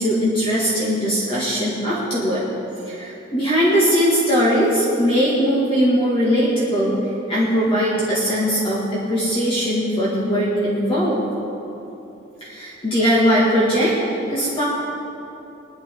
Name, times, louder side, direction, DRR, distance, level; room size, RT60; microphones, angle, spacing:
voice 1, 0.0-2.4 2.9-7.0 7.3-11.3 12.4-14.0 14.3-14.6, equal, 30° left, -8 dB, 2.3 m, -20 dB
20.5 x 11.5 x 3.8 m, 3.0 s
head